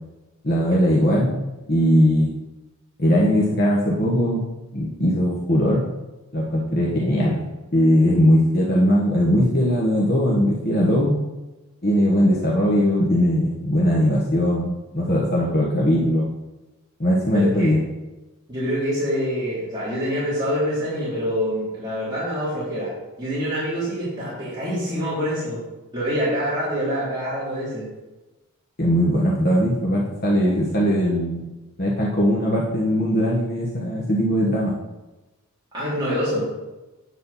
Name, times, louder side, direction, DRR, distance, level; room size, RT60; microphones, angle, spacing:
voice 1, 0.4-1.4 1.7-2.3 3.0-4.5 4.7-5.8 6.3-7.4 7.7-11.2 11.8-16.3 17.0-17.8 28.8-34.7, equal, 45° left, -4 dB, 1.3 m, -20 dB
voice 2, 17.3-17.7 18.5-22.9 23.2-25.6 25.9-27.9 35.7-36.5, equal, 20° right, -11 dB, 3.3 m, -25 dB
9.5 x 7.5 x 4.2 m, 1.1 s
head